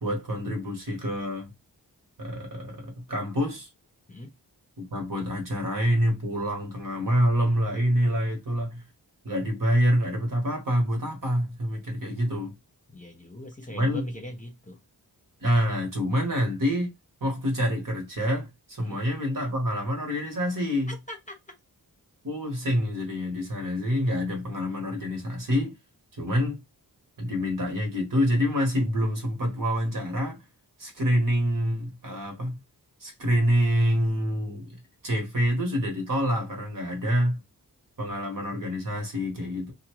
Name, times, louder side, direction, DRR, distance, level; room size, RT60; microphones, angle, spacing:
voice 1, 0.0-1.5 2.2-3.7 4.8-8.8 9.2-12.5 13.7-14.0 15.4-16.9 17.2-20.9 22.2-25.8 26.2-26.6 27.2-30.4 30.8-32.6 33.0-37.4 38.0-39.7, equal, 55° right, 1.2 m, -26 dB
voice 2, 12.9-14.8 18.8-19.0 20.9-21.4, left 1 dB, 20° left, 0.7 m, -41 dB
2.7 x 2.2 x 2.9 m
wide cardioid pair, 65°, 39 cm